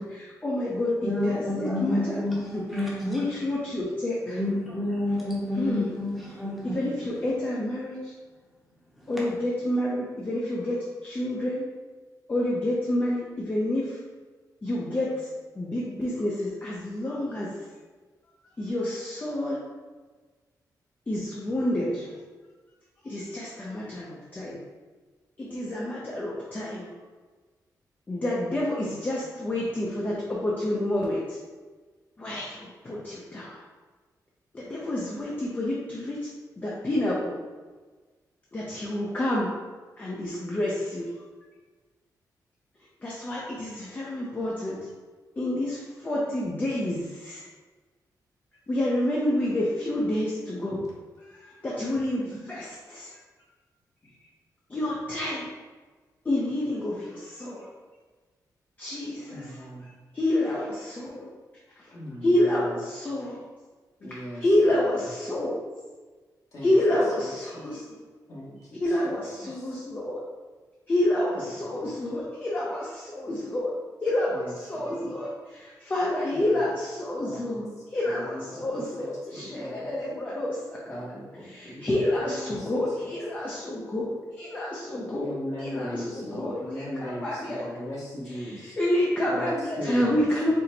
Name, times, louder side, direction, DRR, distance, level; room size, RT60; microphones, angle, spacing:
voice 1, 0.0-2.2 2.5-4.4 5.5-5.9 6.6-8.1 9.1-11.7 12.3-14.0 14.6-15.3 15.5-17.5 18.6-19.6 21.1-22.2 23.0-24.6 25.4-26.9 28.1-31.4 32.2-33.6 34.5-36.3 36.6-37.4 38.5-39.6 40.0-41.1 43.0-44.9 45.4-47.5 48.7-50.8 51.2-53.1 54.7-55.5 56.2-57.7 58.8-61.3 61.8-61.9 62.2-63.4 64.1-65.6 66.6-68.0 68.8-70.2 70.9-73.7 74.0-81.1 81.4-87.6 88.2-90.5, left 1 dB, 25° left, -5 dB, 0.6 m, -29 dB
voice 2, 1.0-3.2 4.3-6.8, left 1 dB, ahead, -7 dB, 0.9 m, -29 dB
voice 3, 59.3-59.9 61.9-62.6 64.0-64.8 66.5-66.7 67.5-67.6 68.3-68.8 69.6-69.7 74.3-75.1 76.3-76.6 77.2-77.6 78.1-78.7 79.0-79.9 80.9-82.7 85.2-88.8 89.2-90.2, left 1 dB, 50° left, -6 dB, 1.3 m, -38 dB
4.3 x 2.1 x 3.9 m, 1.4 s
wide cardioid pair, 135°, 7 cm